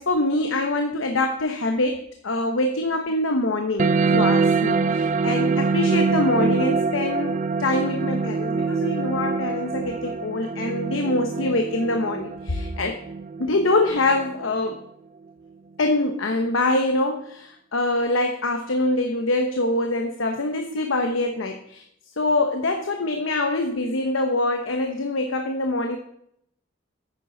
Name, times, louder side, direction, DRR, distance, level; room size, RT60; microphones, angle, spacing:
voice 1, 0.0-13.0 13.4-14.8 15.8-21.8 22.2-26.0, left 2 dB, 85° left, 5 dB, 0.9 m, -24 dB
sound 1, 3.8-14.8, right 4 dB, 40° right, 0.4 m, -24 dB
10.0 x 9.1 x 3.9 m, 0.73 s
head